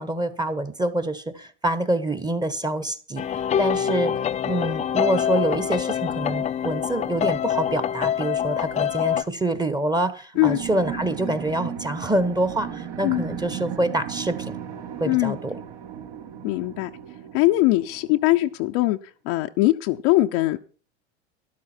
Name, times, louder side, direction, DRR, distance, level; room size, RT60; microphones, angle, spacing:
voice 1, 0.0-4.1 4.4-14.6 15.0-15.5, right 1 dB, 10° right, 13 dB, 1.3 m, -26 dB
sound 1, 3.2-9.2, left 9 dB, 20° left, 0.5 m, -25 dB
sound 2, 10.3-18.5, right 8 dB, 65° right, 3.6 m, -36 dB
voice 2, 15.0-15.4 16.4-16.9 17.3-19.0 19.2-20.6, left 18 dB, 55° left, 5 dB, 0.8 m, -21 dB
12.5 x 11.5 x 4.4 m, 0.40 s
hypercardioid pair, 100°, 33 cm